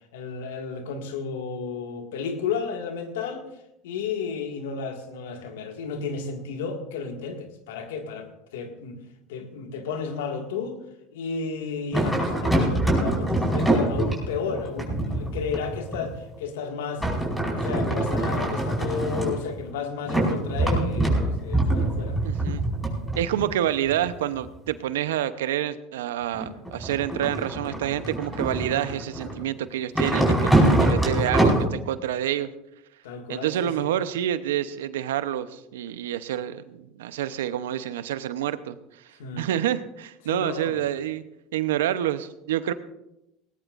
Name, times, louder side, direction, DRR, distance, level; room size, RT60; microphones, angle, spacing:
voice 1, 0.1-3.5 3.8-9.0 9.3-10.8 11.1-17.1 17.4-22.2 33.0-33.9 39.2-39.5 40.3-40.8, left 5 dB, 80° left, 4 dB, 1.9 m, -32 dB
sound 1, 11.9-16.4 17.0-19.7 20.1-24.7 26.3-29.4 30.0-31.7, right 1 dB, ahead, 5.1 m, -24 dB
voice 2, 22.2-22.6 23.2-32.5 33.3-38.8 39.4-41.2 41.5-42.7, right 11 dB, 85° right, 13 dB, 0.8 m, -28 dB
19.0 x 18.5 x 2.5 m, 0.86 s
hypercardioid pair, 85°, 0 cm